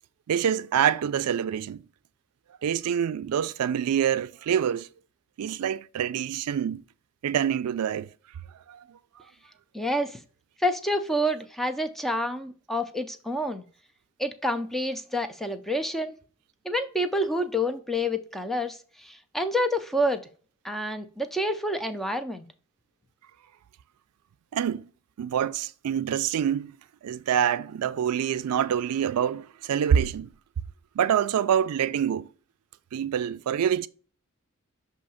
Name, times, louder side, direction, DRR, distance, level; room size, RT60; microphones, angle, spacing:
voice 1, 0.3-1.8 2.6-4.9 5.4-6.8 7.2-8.1 8.7-8.8 24.5-24.8 25.2-26.7 27.0-30.3 31.0-32.3 32.9-33.9, right 8 dB, 85° right, 0.3 m, -26 dB
voice 2, 9.7-10.2 10.6-13.6 14.2-16.1 16.6-20.2 20.6-22.5, equal, ahead, 0.4 m, -28 dB
6.2 x 2.8 x 5.6 m
head